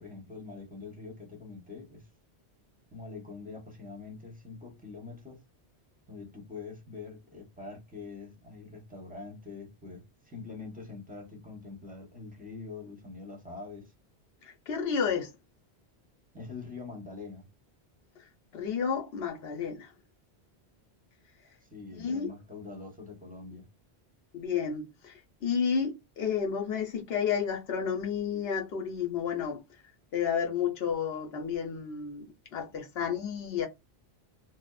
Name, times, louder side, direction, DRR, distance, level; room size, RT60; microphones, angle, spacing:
voice 1, 0.0-2.1 2.9-5.4 6.1-13.9 16.3-17.5 21.6-23.6, left 4 dB, 10° right, 0.8 m, -44 dB
voice 2, 14.4-15.3 18.5-19.9 21.9-22.3 24.3-29.6 30.1-33.7, left 7 dB, 70° left, 0.9 m, -31 dB
2.8 x 2.0 x 2.2 m
omnidirectional pair, 1.1 m